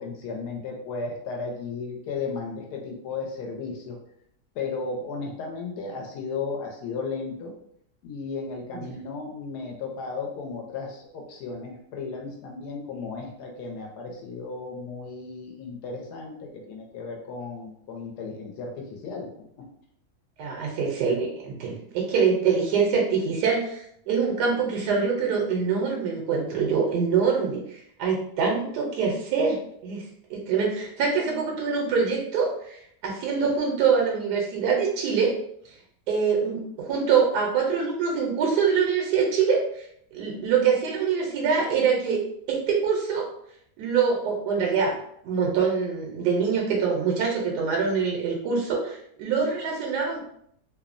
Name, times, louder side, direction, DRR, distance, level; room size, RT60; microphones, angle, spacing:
voice 1, 0.0-4.0 4.5-7.5 8.0-19.7, left 4 dB, 85° left, 1 dB, 1.2 m, -35 dB
voice 2, 20.4-29.6 29.8-35.3 35.6-35.7 36.1-42.2 42.5-43.3 43.8-45.0 45.2-50.2, right 5 dB, 85° right, -1 dB, 1.2 m, -24 dB
3.1 x 2.0 x 2.4 m, 0.70 s
omnidirectional pair, 1.7 m